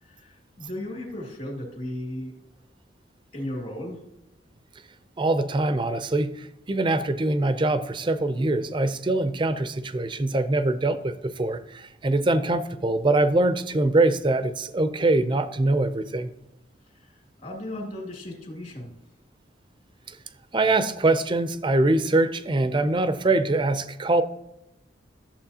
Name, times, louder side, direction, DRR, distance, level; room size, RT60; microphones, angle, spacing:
voice 1, 0.0-2.4 3.3-4.0 16.9-18.9, left 1 dB, 45° left, 0 dB, 2.3 m, -36 dB
voice 2, 5.2-16.3 20.1-20.2 20.5-24.2, right 2 dB, 25° right, 12 dB, 0.5 m, -23 dB
11.5 x 7.3 x 2.8 m, 0.84 s
head